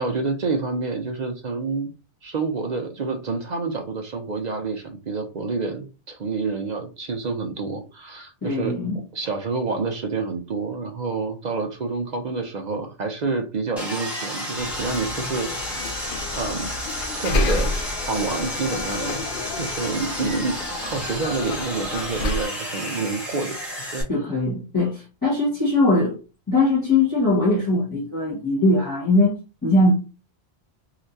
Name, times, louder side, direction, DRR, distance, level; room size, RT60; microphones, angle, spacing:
voice 1, 0.0-1.9 2.2-8.8 9.1-16.0 16.4-16.7 17.1-17.7 18.1-19.2 19.6-24.0, right 4 dB, 50° right, 0.6 m, -28 dB
voice 2, 8.4-9.0 24.1-26.2 26.5-29.3 29.6-29.9, left 2 dB, 20° left, 1.3 m, -20 dB
Sawing, 13.8-24.0, equal, ahead, 1.4 m, -32 dB
sound 1, 14.5-22.5, left 3 dB, 60° left, 0.6 m, -30 dB
3.3 x 2.9 x 2.6 m
omnidirectional pair, 1.1 m